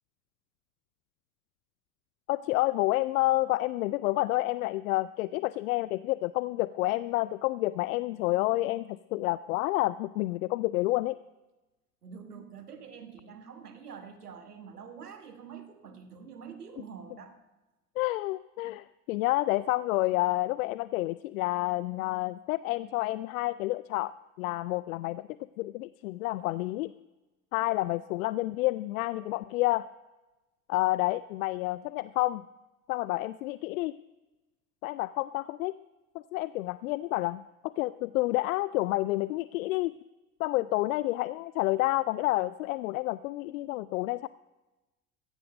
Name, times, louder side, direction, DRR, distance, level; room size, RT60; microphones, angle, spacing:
voice 1, 2.3-11.2 18.0-25.3 25.6-26.9 27.5-29.9 30.7-32.4 32.9-34.0 34.8-35.7 36.1-39.9 40.4-44.3, left 18 dB, 65° left, 17 dB, 0.5 m, -29 dB
voice 2, 12.0-17.4, right 6 dB, 85° right, 9 dB, 1.4 m, -46 dB
15.5 x 14.5 x 5.1 m, 1.1 s
figure-of-eight pair, 65°, 45 cm